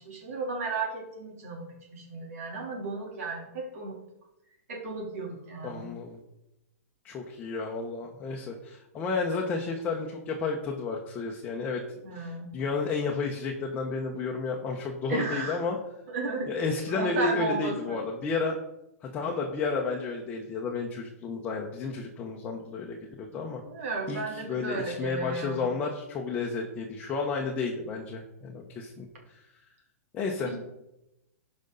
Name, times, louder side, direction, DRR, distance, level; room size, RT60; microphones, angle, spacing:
voice 1, 0.0-4.0 4.7-5.9 12.0-12.5 15.1-15.6 16.1-16.5 16.9-18.0 23.7-25.6 30.4-30.6, right 3 dB, 70° right, -2 dB, 3.4 m, -34 dB
voice 2, 5.6-6.2 7.0-11.8 12.1-15.8 16.5-18.5 19.0-23.6 24.1-24.2 24.5-29.4 30.1-30.5, left 4 dB, 20° left, 0 dB, 1.0 m, -32 dB
15.5 x 5.4 x 4.0 m, 0.91 s
hypercardioid pair, 150°, 8 cm